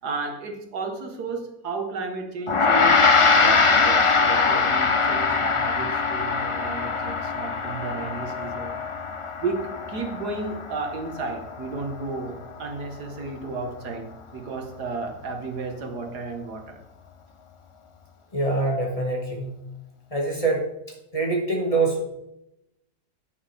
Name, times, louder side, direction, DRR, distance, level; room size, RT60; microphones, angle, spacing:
voice 1, 0.0-8.7 9.4-16.8, right 3 dB, 80° right, 5 dB, 2.0 m, -33 dB
Gong, 2.5-12.0, left 4 dB, 40° left, 0.4 m, -22 dB
voice 2, 18.3-19.6 20.1-20.6 21.1-22.0, right 3 dB, 20° left, -1 dB, 2.1 m, -24 dB
9.6 x 9.1 x 3.5 m, 0.85 s
omnidirectional pair, 1.7 m